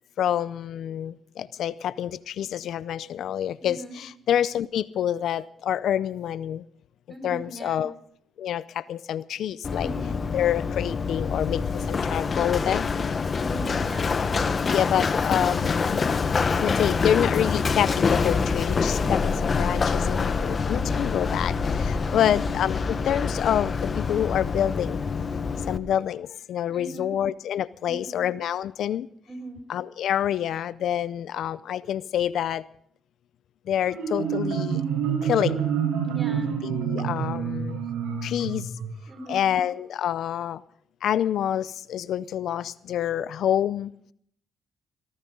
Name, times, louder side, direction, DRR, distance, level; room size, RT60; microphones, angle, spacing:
voice 1, 0.2-6.7 7.2-7.9 8.4-9.9 10.3-12.9 14.7-16.0 16.6-25.0 25.7-29.1 29.7-32.6 33.7-34.8 35.2-35.7 36.6-37.8 38.2-38.7 39.3-40.6 41.0-43.9, left 10 dB, 70° left, 18 dB, 0.5 m, -27 dB
voice 2, 3.6-4.0 7.1-7.8 9.7-10.2 13.3-14.2 22.0-22.4 26.7-27.2 27.9-28.2 29.3-29.6 36.0-36.6 39.1-39.5, right 1 dB, 15° right, 7 dB, 4.9 m, -40 dB
Run, 9.6-25.8, left 5 dB, 40° left, 1.1 m, -26 dB
Marimba xylophone, 33.8-39.4, right 7 dB, 85° right, 5.0 m, -28 dB
18.5 x 18.5 x 3.8 m, 0.65 s
cardioid pair, 90°, 0 cm